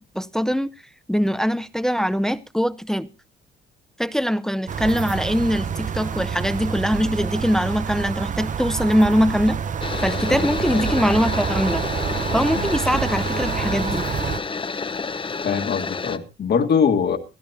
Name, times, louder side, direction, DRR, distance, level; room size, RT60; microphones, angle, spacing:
voice 1, 0.1-0.7 1.1-3.1 4.0-9.6 10.0-11.8 12.3-14.1, equal, ahead, 0.6 m, -22 dB
sound 1, 4.7-14.4, right 7 dB, 40° right, 0.7 m, -27 dB
sound 2, 9.8-16.2, left 4 dB, 25° left, 0.9 m, -29 dB
voice 2, 10.3-10.8 12.6-12.7 15.4-17.2, left 6 dB, 55° left, 1.7 m, -23 dB
21.5 x 13.0 x 2.7 m
cardioid pair, 90°, 20 cm